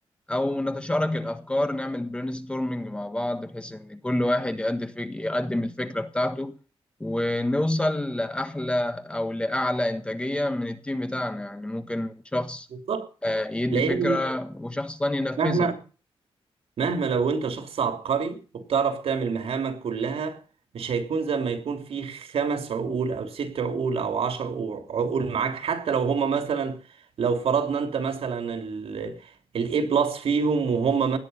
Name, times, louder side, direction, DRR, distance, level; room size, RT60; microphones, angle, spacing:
voice 1, 0.3-6.5 7.0-12.7 13.2-15.7, left 1 dB, 10° left, 1.3 m, -28 dB
voice 2, 13.7-14.2 15.4-15.8 16.8-20.4 20.7-26.8 27.2-31.2, right 5 dB, 70° right, 3.1 m, -26 dB
17.5 x 11.0 x 5.6 m
wide cardioid pair, 170°, 10 cm